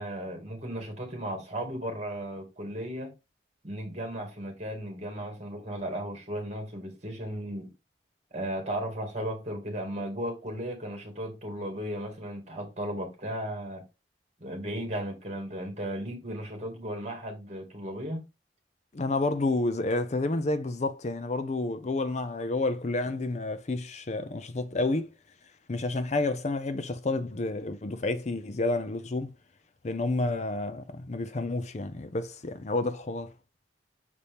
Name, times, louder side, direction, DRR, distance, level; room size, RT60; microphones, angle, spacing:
voice 1, 0.0-3.1 3.6-7.7 8.3-13.8 14.4-18.3, right 1 dB, 40° right, 2.1 m, -35 dB
voice 2, 18.9-25.1 25.7-29.3 29.8-33.3, left 2 dB, 40° left, 0.5 m, -30 dB
6.8 x 4.2 x 3.5 m
head